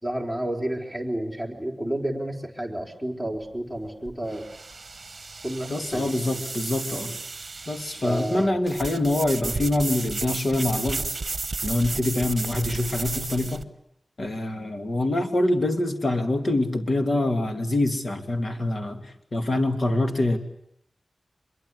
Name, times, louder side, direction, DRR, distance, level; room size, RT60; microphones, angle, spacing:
voice 1, 0.0-4.4 5.4-6.4 8.0-8.5, right 1 dB, 10° left, 1 dB, 4.2 m, -31 dB
sound 1, 3.3-13.6, right 3 dB, 50° right, 1.1 m, -34 dB
voice 2, 5.7-7.2 7.7-11.2 11.6-13.6 14.2-20.4, left 1 dB, 50° left, 6 dB, 2.8 m, -25 dB
24.5 x 22.5 x 9.8 m, 0.74 s
wide cardioid pair, 95°, 0 cm